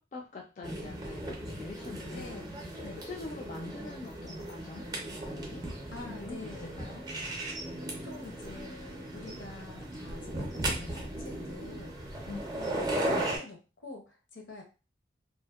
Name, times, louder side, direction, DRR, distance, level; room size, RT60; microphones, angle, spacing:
voice 1, 0.0-2.3 2.7-4.8 5.2-5.6 6.0-7.0 12.3-12.4, left 3 dB, 40° left, 0 dB, 0.3 m, -44 dB
sound 1, 0.6-13.4, right 1 dB, 20° right, 0.5 m, -37 dB
voice 2, 2.1-2.5 2.8-3.0 5.9-6.8 7.8-11.9 12.5-14.6, left 2 dB, 80° left, 1 dB, 0.8 m, -46 dB
2.7 x 2.0 x 2.3 m, 0.32 s
head